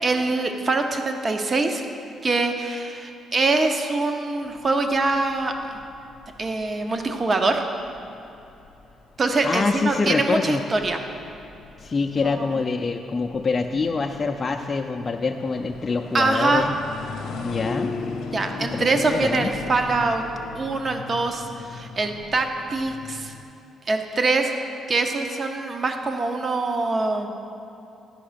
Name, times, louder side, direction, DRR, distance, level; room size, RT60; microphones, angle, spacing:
voice 1, 0.0-1.8 2.2-5.5 6.4-7.6 9.2-11.0 12.2-12.5 16.1-16.7 18.3-20.2 20.5-23.3 23.9-24.5 24.9-27.3, right 3 dB, 35° right, 5 dB, 0.8 m, -24 dB
sound 1, 4.5-23.4, left 4 dB, 75° left, 0.7 m, -39 dB
voice 2, 9.4-10.6 11.8-16.8 17.4-17.9 18.6-19.5, left 4 dB, 35° left, 3 dB, 0.4 m, -25 dB
11.0 x 5.4 x 5.1 m, 2.8 s
cardioid pair, 90°, 0 cm